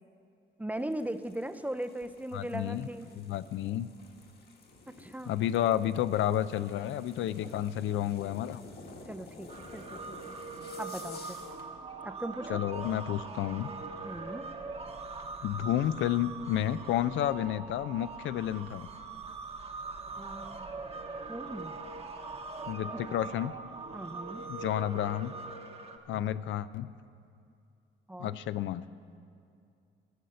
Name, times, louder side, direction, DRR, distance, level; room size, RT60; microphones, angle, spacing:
voice 1, 0.6-3.1 5.0-5.4 9.1-10.3 10.8-11.4 12.0-12.6 14.0-14.5 20.2-20.7 21.3-21.8 22.9-23.3 23.9-24.5 26.1-26.2 28.1-28.4, right 1 dB, 10° right, 10 dB, 0.5 m, -39 dB
sound 1, 0.7-11.7, left 3 dB, 55° left, 1.6 m, -52 dB
voice 2, 2.3-2.9 3.2-3.9 5.3-8.6 12.5-13.7 15.4-18.9 22.7-23.5 24.5-25.3 26.1-26.9 28.2-28.8, left 12 dB, 75° left, 14 dB, 0.4 m, -31 dB
sound 2, 9.5-26.0, right 3 dB, 30° right, 1.0 m, -42 dB
15.0 x 6.3 x 6.7 m, 2.5 s
cardioid pair, 90°, 20 cm